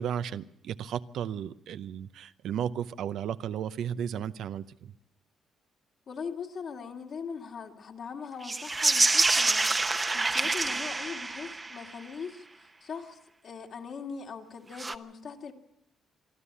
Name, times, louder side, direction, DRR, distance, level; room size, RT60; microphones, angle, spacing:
voice 1, 0.0-4.9, right 9 dB, 80° right, 13 dB, 0.7 m, -34 dB
voice 2, 6.1-15.5, left 6 dB, 60° left, 2 dB, 2.4 m, -41 dB
sound 1, 8.4-11.9 14.7-14.9, right 3 dB, 25° right, 0.9 m, -26 dB
24.5 x 12.5 x 8.5 m, 0.79 s
cardioid pair, 85°, 0 cm